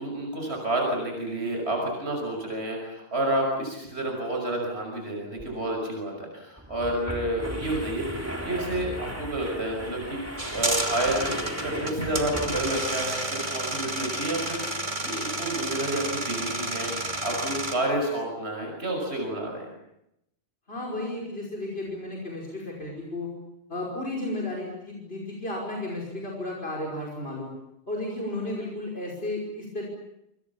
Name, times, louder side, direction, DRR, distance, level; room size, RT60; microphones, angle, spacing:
voice 1, 0.0-10.2 10.5-19.7, right 1 dB, 85° right, 1 dB, 6.3 m, -30 dB
sound 1, 5.4-5.5 5.8-5.9 6.6-13.0, equal, 15° right, 3.5 m, -36 dB
sound 2, 10.4-17.7, right 1 dB, 45° right, 3.1 m, -31 dB
voice 2, 20.7-23.3 23.7-27.5 27.9-29.8, left 1 dB, 65° left, -2 dB, 5.8 m, -33 dB
28.0 x 26.0 x 7.2 m, 0.83 s
omnidirectional pair, 1.1 m